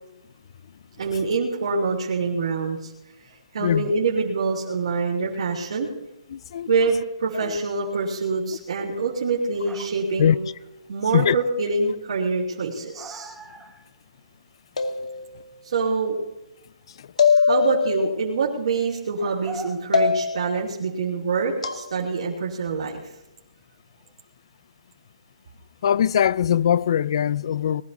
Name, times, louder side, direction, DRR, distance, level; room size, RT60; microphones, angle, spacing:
voice 1, 1.0-2.9 3.2-5.9 6.7-10.4 10.9-13.3 15.6-16.2 17.3-23.1, right 4 dB, 60° right, 2.9 m, -25 dB
voice 2, 3.6-3.9 6.3-6.7 7.3-7.6 10.2-10.4 11.1-11.4 16.9-17.1 25.8-27.8, left 9 dB, 50° left, 0.5 m, -21 dB
sound 1, 6.5-7.1 9.3-10.2 10.5-10.9 11.4-11.5 11.8-11.9 12.1-12.2 12.4-14.0 14.2-14.3 14.8-15.1 17.5-17.6 19.1-20.6 21.3-21.7 23.5-23.6 24.0-24.1, right 2 dB, 5° right, 0.8 m, -43 dB
sound 2, 14.8-15.6 17.2-18.1 19.9-20.6 21.6-21.8, left 6 dB, 90° left, 2.1 m, -22 dB
20.5 x 12.5 x 4.1 m
hypercardioid pair, 160°, 3 cm